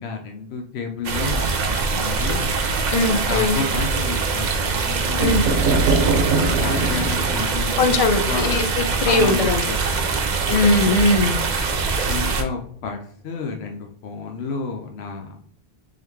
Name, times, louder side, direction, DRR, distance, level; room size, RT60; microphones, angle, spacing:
voice 1, 0.0-2.5 3.1-5.5 6.2-8.0 8.3-8.7 9.0-10.3 10.8-11.0 12.0-15.4, left 4 dB, 90° left, 2 dB, 0.8 m, -31 dB
sound 1, 1.0-12.4, right 4 dB, 50° right, 0.7 m, -23 dB
voice 2, 2.9-3.6 5.2-5.4 7.8-9.6 10.5-11.4, left 3 dB, 50° left, 7 dB, 0.4 m, -20 dB
sound 2, 5.2-8.9, right 3 dB, 80° right, 0.9 m, -23 dB
3.7 x 3.4 x 3.0 m, 0.67 s
omnidirectional pair, 1.0 m